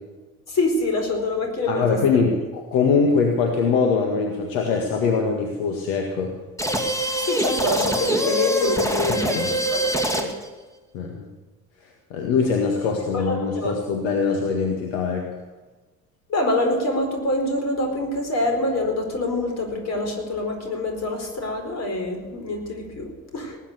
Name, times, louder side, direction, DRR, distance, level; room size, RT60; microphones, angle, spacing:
voice 1, 0.5-2.0 7.2-9.2 9.5-9.9 10.1-10.3 13.1-13.7 16.3-23.6, left 2 dB, 40° left, 3 dB, 4.5 m, -25 dB
voice 2, 1.7-6.3 9.1-9.5 10.9-11.3 11.8-15.3, left 5 dB, 65° left, 2 dB, 1.9 m, -23 dB
sound 1, 6.6-10.5, right 1 dB, 5° left, 2.0 m, -24 dB
19.0 x 9.7 x 6.7 m, 1.3 s
figure-of-eight pair, 60°, 41 cm